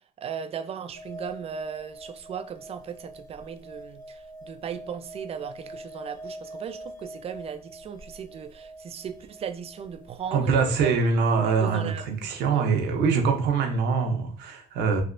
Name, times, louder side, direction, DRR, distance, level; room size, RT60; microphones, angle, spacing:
voice 1, 0.2-10.9 11.4-12.7, right 7 dB, 35° right, 0.3 m, -37 dB
sound 1, 0.9-11.2, right 1 dB, 55° left, 1.1 m, -44 dB
voice 2, 10.3-15.0, right 5 dB, 90° right, 0.7 m, -24 dB
3.2 x 2.8 x 2.5 m
cardioid pair, 110°, 17 cm